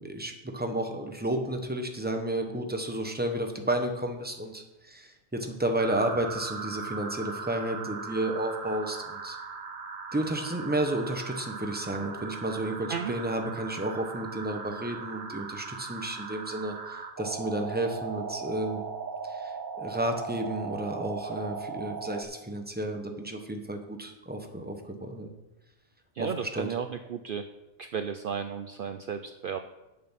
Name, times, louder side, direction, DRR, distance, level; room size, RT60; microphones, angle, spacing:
voice 1, 0.0-9.4 10.1-18.8 19.3-19.5 19.8-25.3 26.2-26.7, right 1 dB, 10° right, 4 dB, 1.0 m, -32 dB
sound 1, 5.8-22.2, right 5 dB, 45° right, 1.0 m, -38 dB
voice 2, 26.2-27.5 27.8-29.6, right 7 dB, 60° right, 8 dB, 0.6 m, -34 dB
8.6 x 7.3 x 5.8 m, 0.98 s
omnidirectional pair, 1.3 m